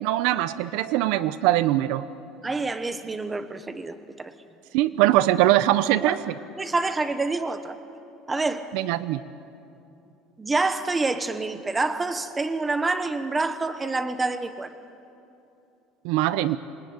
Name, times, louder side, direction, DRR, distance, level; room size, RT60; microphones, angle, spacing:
voice 1, 0.0-2.1 4.7-6.3 8.7-9.2 16.0-16.6, right 14 dB, 75° right, 15 dB, 0.7 m, -22 dB
voice 2, 2.4-4.3 6.0-6.1 6.6-7.8 8.3-8.7 10.4-14.7, right 3 dB, 15° right, 10 dB, 1.0 m, -27 dB
27.0 x 21.5 x 9.4 m, 2.8 s
cardioid pair, 165°, 0 cm